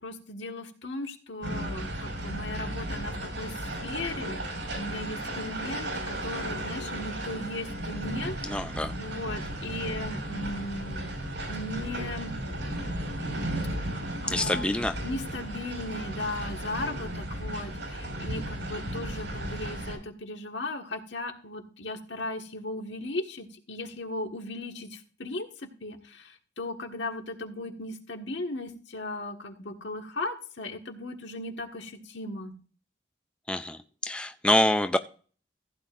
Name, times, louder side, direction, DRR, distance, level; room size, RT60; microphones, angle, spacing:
voice 1, 0.0-8.3 9.0-11.1 11.5-12.3 13.3-13.5 13.8-14.8 15.0-32.5, left 2 dB, 80° left, 1.5 m, -37 dB
sound 1, 1.4-19.9, right 1 dB, 85° right, 5.1 m, -35 dB
voice 2, 8.4-9.0 14.3-15.0 33.5-35.0, left 1 dB, 5° left, 0.4 m, -26 dB
15.5 x 8.9 x 2.5 m
head